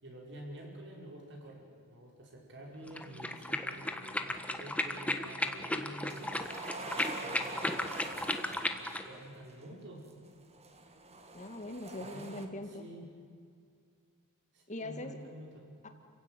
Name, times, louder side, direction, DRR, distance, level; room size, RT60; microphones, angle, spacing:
voice 1, 0.0-6.5 7.2-10.1 12.0-13.1 14.5-15.7, right 1 dB, 55° right, 0 dB, 5.7 m, -49 dB
sound 1, 2.9-9.1, left 1 dB, 5° left, 1.3 m, -35 dB
sound 2, 6.1-9.4 10.3-12.5, right 2 dB, 30° right, 2.1 m, -45 dB
voice 2, 11.3-12.9 14.7-15.2 15.8-15.9, left 1 dB, 35° left, 6 dB, 2.3 m, -41 dB
29.5 x 16.0 x 9.4 m, 2.3 s
head